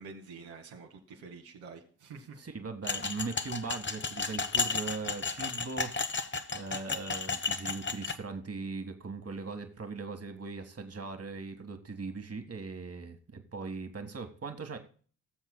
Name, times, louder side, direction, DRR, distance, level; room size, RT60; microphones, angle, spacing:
voice 1, 0.0-2.4, right 4 dB, 75° right, 1 dB, 2.1 m, -48 dB
voice 2, 2.4-14.8, right 4 dB, 30° right, 6 dB, 1.7 m, -40 dB
sound 1, 2.8-8.2, left 4 dB, 25° left, 1.1 m, -33 dB
19.5 x 7.2 x 2.2 m, 0.42 s
hypercardioid pair, 40°, 47 cm